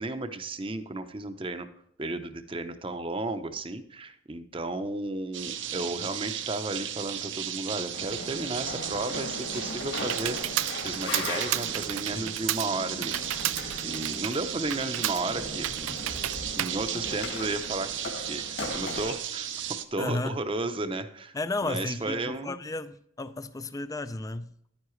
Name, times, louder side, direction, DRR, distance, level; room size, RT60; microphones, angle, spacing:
voice 1, 0.0-1.7 2.0-13.2 13.4-15.9 16.6-21.4 21.6-22.6, right 2 dB, 25° right, 10 dB, 0.7 m, -34 dB
sound 1, 5.3-19.8, right 10 dB, 70° right, 0.8 m, -35 dB
sound 2, 7.9-19.1, left 2 dB, 60° left, 1.9 m, -39 dB
Computer keyboard, 9.2-17.7, right 14 dB, 90° right, 0.4 m, -34 dB
voice 2, 20.0-20.4 21.3-24.5, left 2 dB, 15° left, 13 dB, 0.4 m, -33 dB
11.0 x 9.6 x 3.1 m, 0.71 s
head